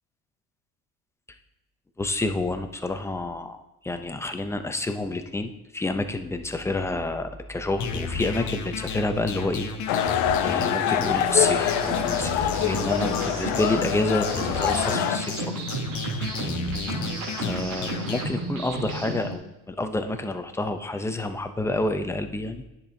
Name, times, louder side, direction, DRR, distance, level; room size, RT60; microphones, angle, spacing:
voice 1, 2.0-15.5 17.4-22.6, left 2 dB, 5° left, 7 dB, 0.5 m, -29 dB
sound 1, 7.8-18.3, left 5 dB, 50° left, 1.0 m, -34 dB
sound 2, 9.9-15.2, left 9 dB, 70° left, 0.8 m, -25 dB
sound 3, 11.1-19.4, right 2 dB, 90° right, 3.1 m, -33 dB
10.0 x 6.9 x 2.7 m, 0.95 s
supercardioid pair, 110°, 38 cm